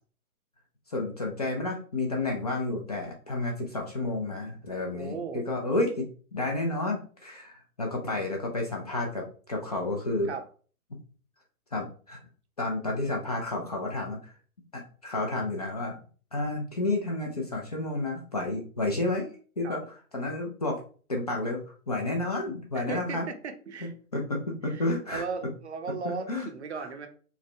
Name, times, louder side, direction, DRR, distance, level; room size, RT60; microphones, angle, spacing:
voice 1, 0.9-10.3 11.7-12.2 12.6-14.3 14.7-15.9 16.3-19.3 19.6-19.8 20.1-20.8 21.1-23.3 24.1-25.2 26.0-26.5, left 2 dB, 30° left, 0 dB, 0.4 m, -31 dB
voice 2, 4.9-5.4 10.3-10.4 19.6-19.8 22.7-23.9 24.7-27.1, right 5 dB, 50° right, 6 dB, 0.6 m, -37 dB
4.7 x 2.1 x 3.2 m, 0.41 s
figure-of-eight pair, 125°, 44 cm